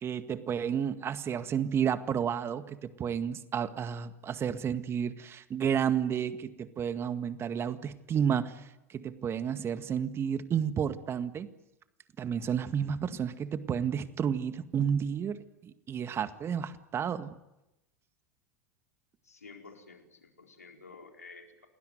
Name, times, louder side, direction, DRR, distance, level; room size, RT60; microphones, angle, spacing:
voice 1, 0.0-8.6 8.9-11.5 12.2-17.3, right 8 dB, 30° right, 10 dB, 1.9 m, -31 dB
voice 2, 19.2-21.7, left 4 dB, 85° left, 3 dB, 4.3 m, -51 dB
28.5 x 20.0 x 9.4 m, 0.95 s
figure-of-eight pair, 85°, 8 cm